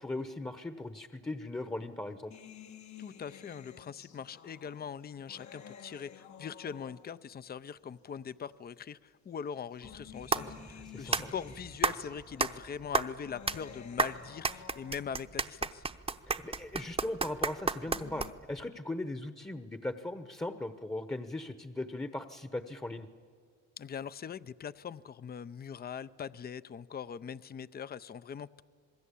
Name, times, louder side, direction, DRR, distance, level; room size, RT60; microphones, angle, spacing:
voice 1, 0.0-2.3 10.4-10.5 10.9-11.3 16.3-23.1, left 2 dB, 10° left, 9 dB, 1.0 m, -38 dB
sound 1, 2.3-7.4 8.3-8.4 9.5-15.4 17.5-18.3, left 8 dB, 70° left, 1.6 m, -52 dB
voice 2, 3.0-15.8 23.8-28.6, left 7 dB, 30° left, 16 dB, 0.6 m, -42 dB
sound 2, 9.8-18.6, right 4 dB, 20° right, 0.9 m, -33 dB
27.0 x 20.5 x 8.4 m, 2.1 s
cardioid pair, 90°, 30 cm